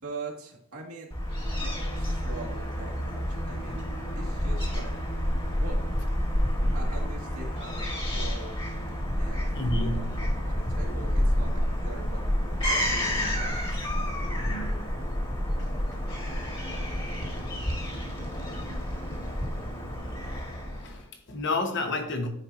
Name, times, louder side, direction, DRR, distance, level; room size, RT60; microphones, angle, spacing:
voice 1, 0.0-1.1 1.6-3.8 4.2-4.9 5.6-5.8 6.7-8.7 9.1-13.5, right 2 dB, 80° right, 2.0 m, -42 dB
Fowl / Gull seagull, 1.1-21.0, equal, 25° left, 1.6 m, -29 dB
voice 2, 3.5-3.9 6.6-6.8 9.5-10.1 14.0-14.7 15.9-16.0 20.3-20.4 20.8-22.3, left 2 dB, 55° left, 1.2 m, -32 dB
9.5 x 4.5 x 2.7 m
head